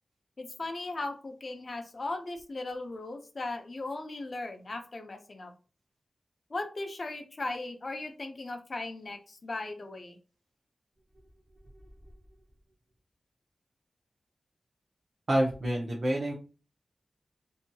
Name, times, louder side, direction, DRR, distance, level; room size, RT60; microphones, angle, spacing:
voice 1, 0.4-5.5 6.5-10.2, left 2 dB, 45° left, 5 dB, 0.5 m, -37 dB
voice 2, 15.3-16.3, right 1 dB, 45° right, -3 dB, 0.6 m, -27 dB
2.7 x 2.6 x 2.2 m, 0.35 s
wide cardioid pair, 120°, 0 cm